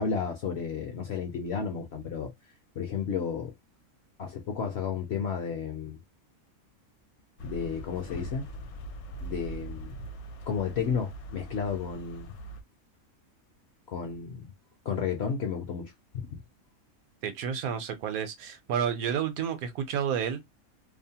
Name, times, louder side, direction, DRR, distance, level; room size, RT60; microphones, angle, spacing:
voice 1, 0.0-2.3 2.8-3.5 4.2-6.0 7.4-8.5 9.2-9.9 10.5-12.3 13.9-14.5 14.9-15.9 16.3-16.4, left 6 dB, 65° left, 0.7 m, -32 dB
sound 1, 7.4-12.6, right 1 dB, 80° left, 1.1 m, -41 dB
voice 2, 17.2-20.4, right 8 dB, 75° right, 1.0 m, -30 dB
2.6 x 2.0 x 2.7 m
omnidirectional pair, 1.6 m